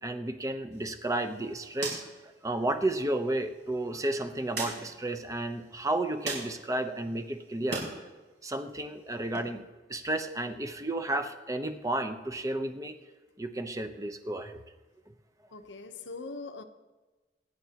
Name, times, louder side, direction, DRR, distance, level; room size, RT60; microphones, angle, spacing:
voice 1, 0.0-2.1 2.4-7.8 8.4-9.6 9.9-13.0 13.4-14.6, right 1 dB, 20° right, 0.8 m, -32 dB
sound 1, 0.7-7.9 8.3-9.4, right 3 dB, 70° right, 5.3 m, -42 dB
voice 2, 15.5-16.6, left 3 dB, 85° left, 1.0 m, -41 dB
25.5 x 10.5 x 2.9 m
head